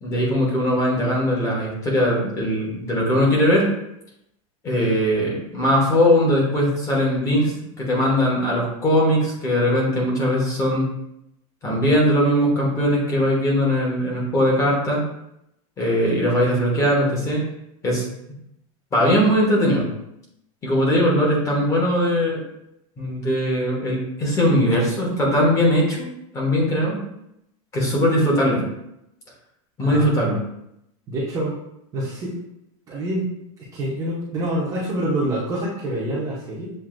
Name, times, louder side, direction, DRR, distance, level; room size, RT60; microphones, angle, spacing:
voice 1, 0.0-3.7 4.6-10.9 11.6-15.0 15.8-17.4 17.8-18.0 18.9-19.9 20.6-22.4 23.0-26.1 26.3-27.0 27.7-28.6 29.8-30.4, equal, 15° left, -4 dB, 1.0 m, -20 dB
voice 2, 29.8-30.3 31.1-31.5 31.9-32.4 32.9-33.3 33.7-36.7, right 1 dB, 20° right, -6 dB, 0.7 m, -26 dB
7.3 x 2.7 x 2.5 m, 0.81 s
supercardioid pair, 175°, 17 cm